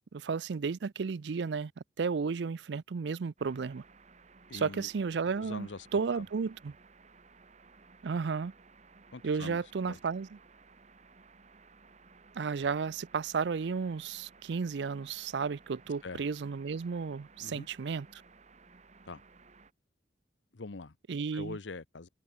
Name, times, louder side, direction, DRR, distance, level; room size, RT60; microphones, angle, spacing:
voice 1, 0.1-1.7 2.0-3.8 4.5-6.7 8.0-8.5 9.2-10.4 12.3-18.2 21.1-21.6, right 5 dB, 70° right, 0.4 m, -33 dB
sound 1, 3.4-19.7, right 4 dB, 40° right, 1.4 m, -58 dB
voice 2, 4.5-4.9 5.4-5.9 6.1-6.2 9.1-9.6 9.9-10.0 16.0-16.2 17.4-17.7 19.1-19.2 20.5-20.9 21.3-22.1, left 3 dB, 85° left, 0.9 m, -43 dB
head